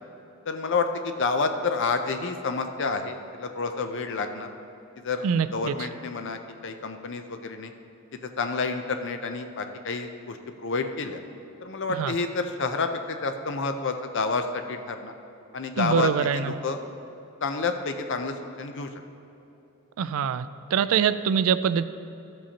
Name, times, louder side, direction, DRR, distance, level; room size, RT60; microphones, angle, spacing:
voice 1, 0.5-4.5 5.0-5.2 5.5-7.7 8.4-10.4 10.6-11.2 11.6-15.1 15.5-16.8 17.4-18.9, left 4 dB, 60° left, 7 dB, 0.6 m, -29 dB
voice 2, 5.2-5.9 11.9-12.1 15.8-16.5 20.0-21.8, right 7 dB, 70° right, 13 dB, 0.3 m, -24 dB
13.5 x 7.6 x 2.9 m, 3.0 s
head